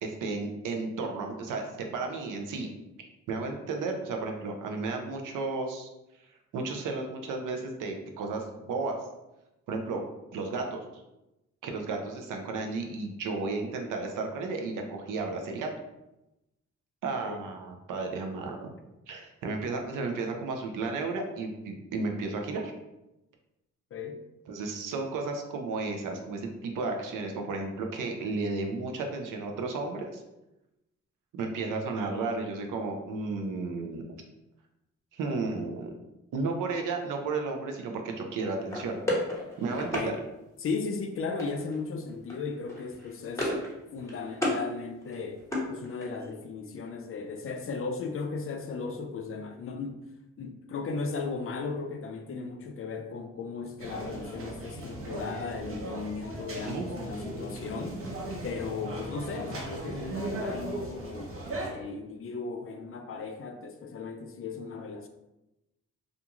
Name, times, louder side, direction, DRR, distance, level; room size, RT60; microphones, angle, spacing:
voice 1, 0.0-2.7 3.3-5.9 6.5-9.0 9.7-10.0 10.3-10.8 11.6-15.7 17.0-18.7 19.1-22.7 24.5-30.2 31.3-34.0 35.1-36.0 36.3-39.0 39.6-40.1 56.5-56.9, right 3 dB, 80° right, 0.6 m, -33 dB
voice 2, 23.9-24.2 39.9-40.2 40.6-43.6 43.9-50.1 50.4-58.1 58.4-61.3 61.7-65.1, left 4 dB, 45° left, 0.4 m, -36 dB
sound 1, 38.7-40.1 41.4-41.8 42.1-42.3 42.7-43.7 44.0-44.6 45.0-46.3, left 1 dB, 10° left, 1.0 m, -33 dB
sound 2, 53.8-61.7, right 1 dB, 45° right, 0.9 m, -37 dB
2.5 x 2.3 x 2.8 m
cardioid pair, 60°, 31 cm